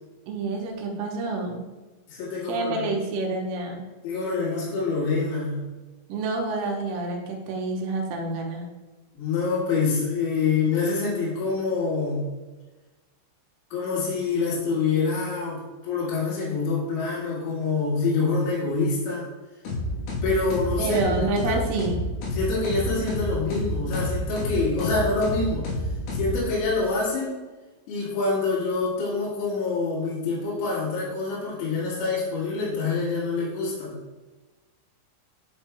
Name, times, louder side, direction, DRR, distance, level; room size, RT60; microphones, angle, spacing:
voice 1, 0.3-1.7 2.5-3.8 6.1-8.7 20.8-22.0, right 3 dB, 90° right, 1 dB, 3.6 m, -28 dB
voice 2, 2.1-2.9 4.0-5.6 9.1-12.3 13.7-19.3 20.2-21.6 22.3-25.7 26.1-27.3 27.9-33.9, left 4 dB, 90° left, -8 dB, 4.7 m, -26 dB
sound 1, 19.6-26.8, left 1 dB, 65° left, 2.6 m, -30 dB
11.5 x 4.4 x 2.3 m, 1.2 s
omnidirectional pair, 6.0 m